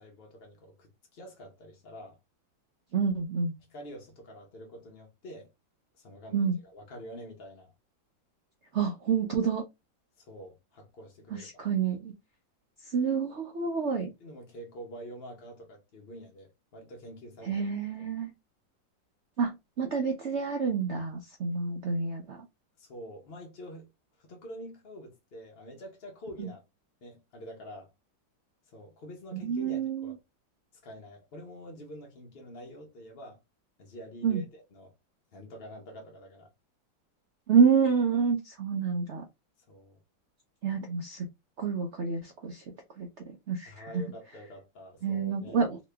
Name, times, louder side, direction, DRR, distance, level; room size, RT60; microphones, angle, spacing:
voice 1, 0.0-2.2 3.7-5.5 5.9-7.7 10.2-11.7 14.2-17.7 18.0-18.1 22.8-23.9 24.2-26.6 27.0-27.9 28.6-30.2 30.8-33.4 33.8-34.9 35.3-36.5 39.7-40.0 43.6-45.6, equal, 55° left, 0.6 m, -46 dB
voice 2, 2.9-3.5 6.3-6.6 8.7-9.6 11.3-12.1 12.8-14.1 17.4-18.3 19.4-19.5 19.8-22.4 26.4-26.5 29.3-30.1 34.2-34.4 37.5-39.2 40.6-41.3 41.6-42.6 43.0-44.0 45.0-45.8, right 6 dB, 85° right, 0.6 m, -28 dB
3.0 x 2.9 x 3.3 m
omnidirectional pair, 2.1 m